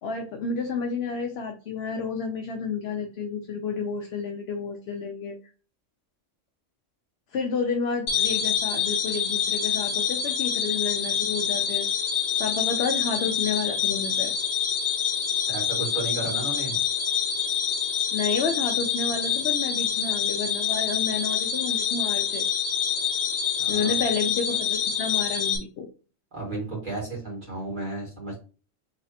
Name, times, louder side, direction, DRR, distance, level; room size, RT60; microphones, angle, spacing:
voice 1, 0.0-5.4 7.3-11.9 12.4-14.3 18.1-22.5 23.7-25.9, left 5 dB, 60° left, 3 dB, 0.8 m, -30 dB
sound 1, 8.1-25.6, left 7 dB, 90° left, 1.2 m, -26 dB
voice 2, 15.5-16.8 23.5-24.0 26.3-28.4, right 2 dB, 40° right, -4 dB, 2.0 m, -33 dB
4.1 x 3.2 x 2.7 m, 0.35 s
omnidirectional pair, 1.3 m